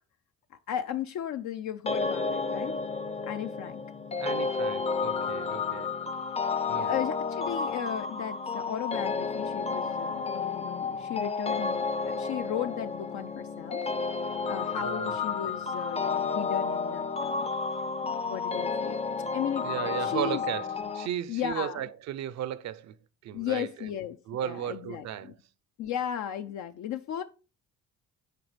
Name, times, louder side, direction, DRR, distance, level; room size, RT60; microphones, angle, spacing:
voice 1, 0.5-2.8 3.3-3.8 6.7-13.8 14.4-17.5 18.0-19.0 19.3-20.4 21.3-21.8 23.3-25.1 25.8-27.2, left 10 dB, 70° left, 0.5 m, -35 dB
sound 1, 1.9-21.1, left 4 dB, 20° left, 0.5 m, -31 dB
voice 2, 4.2-5.9 6.7-7.0 14.3-14.4 14.8-15.1 19.6-23.0 23.2-23.9 24.3-25.4, right 11 dB, 65° right, 0.5 m, -35 dB
9.1 x 4.0 x 3.3 m
cardioid pair, 90°, 30 cm